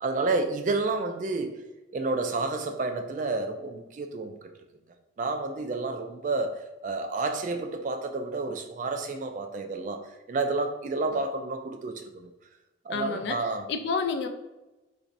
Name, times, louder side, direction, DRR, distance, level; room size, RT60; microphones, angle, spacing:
voice 1, 0.0-1.6 1.9-4.5 5.2-12.3 12.8-13.7, right 3 dB, 40° right, 6 dB, 0.3 m, -30 dB
voice 2, 12.9-14.3, left 5 dB, 60° left, 6 dB, 0.3 m, -30 dB
4.0 x 3.1 x 2.6 m, 1.0 s
head